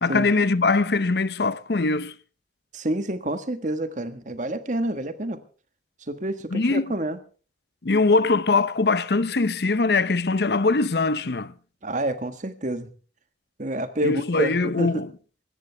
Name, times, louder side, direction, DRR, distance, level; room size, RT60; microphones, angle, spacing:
voice 1, 0.0-2.1 6.5-6.9 7.8-11.5 14.0-15.1, left 3 dB, 60° left, 0.7 m, -22 dB
voice 2, 2.7-5.4 6.1-7.2 11.8-12.9 13.6-15.0, right 1 dB, 45° right, 1.5 m, -28 dB
24.5 x 13.5 x 3.4 m
head